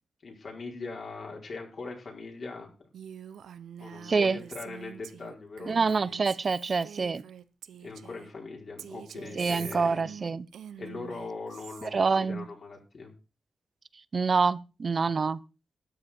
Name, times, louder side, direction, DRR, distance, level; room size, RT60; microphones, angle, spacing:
voice 1, 0.2-2.7 3.8-6.1 7.8-10.2 10.8-13.1, left 3 dB, 60° left, 4.6 m, -41 dB
Female speech woman speaking, 2.9-8.3 8.8-11.9, right 8 dB, 90° right, 0.7 m, -46 dB
voice 2, 4.0-4.4 5.7-7.2 9.4-10.5 11.8-12.5 14.1-15.4, right 4 dB, 50° right, 0.7 m, -26 dB
13.0 x 9.3 x 4.4 m
cardioid pair, 60°, 0 cm